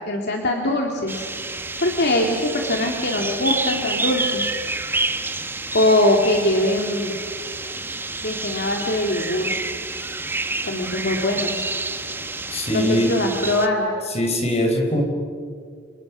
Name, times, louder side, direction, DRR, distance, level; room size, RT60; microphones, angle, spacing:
voice 1, 0.1-1.3 1.8-4.5 5.7-7.1 8.2-9.5 10.7-11.6 12.7-13.9, left 1 dB, 60° left, 1 dB, 2.4 m, -22 dB
sound 1, 1.1-13.7, right 3 dB, 10° right, 1.0 m, -29 dB
voice 2, 12.5-13.1 14.1-15.0, left 1 dB, 35° left, 3 dB, 4.7 m, -21 dB
29.0 x 27.0 x 6.2 m, 2.1 s
head